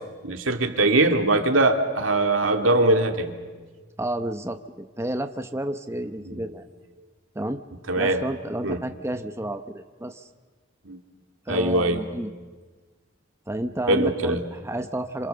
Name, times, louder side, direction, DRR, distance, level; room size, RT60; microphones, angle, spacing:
voice 1, 0.2-3.3 6.3-6.4 7.9-8.2 8.6-8.8 10.9-11.0 11.5-12.0 13.9-14.4, right 2 dB, 85° right, 5 dB, 2.3 m, -21 dB
voice 2, 4.0-4.6 5.0-6.6 7.3-7.6 8.0-10.3 11.5-12.3 13.5-15.3, right 1 dB, 15° right, 7 dB, 0.9 m, -30 dB
27.5 x 27.0 x 6.9 m, 1.4 s
head